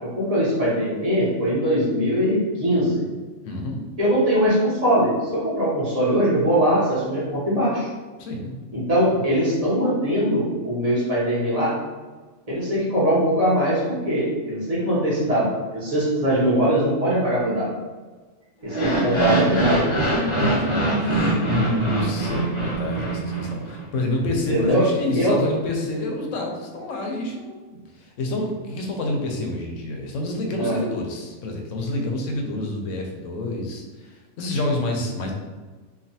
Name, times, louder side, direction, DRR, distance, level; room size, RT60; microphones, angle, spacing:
voice 1, 0.0-3.0 4.0-7.9 8.7-11.7 12.5-17.7 18.6-19.9 24.5-24.8 25.1-25.4 30.6-30.8, equal, 30° right, -8 dB, 1.0 m, -21 dB
voice 2, 3.4-3.8 8.2-8.5 9.1-9.2 18.9-19.7 20.4-35.3, left 1 dB, 75° left, 1 dB, 0.9 m, -28 dB
sound 1, 18.6-23.8, right 1 dB, 30° left, 0.6 m, -23 dB
3.1 x 2.3 x 2.7 m, 1.3 s
omnidirectional pair, 1.4 m